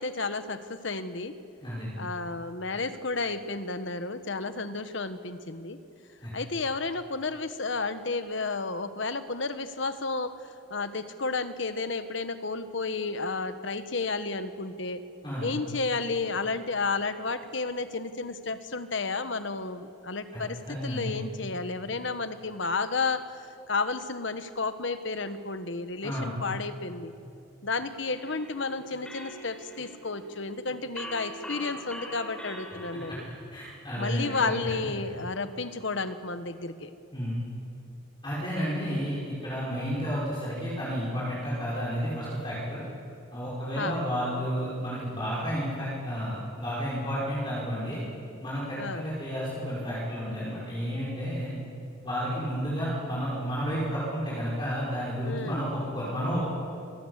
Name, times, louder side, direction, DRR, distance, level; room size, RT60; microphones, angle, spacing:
voice 1, 0.0-1.3 2.0-5.8 6.3-10.4 10.7-15.0 15.4-27.1 27.6-33.2 34.0-36.9 43.8-44.0 48.8-49.1 55.2-55.7, left 3 dB, 65° left, 11 dB, 1.3 m, -32 dB
voice 2, 1.6-2.0 6.2-6.3 15.2-15.5 20.3-20.4 20.7-21.2 26.0-26.3 32.9-33.0 33.5-34.5 37.1-37.4 38.2-42.8 43.3-48.0 48.4-51.5 52.0-56.4, equal, 20° left, -8 dB, 5.5 m, -31 dB
sound 1, 28.1-33.2, equal, 5° left, 3.9 m, -43 dB
25.5 x 19.5 x 8.2 m, 2.6 s
head